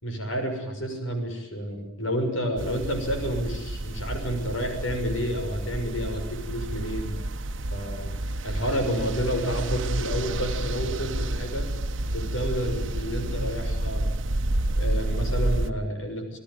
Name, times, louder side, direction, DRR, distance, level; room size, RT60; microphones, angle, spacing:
voice 1, 0.0-7.1 7.7-8.1 8.4-11.7 12.1-14.1 14.7-16.4, equal, 85° left, 5 dB, 6.4 m, -30 dB
sound 1, 2.6-15.7, right 1 dB, 75° right, 1.2 m, -30 dB
28.5 x 18.0 x 9.4 m, 0.87 s
head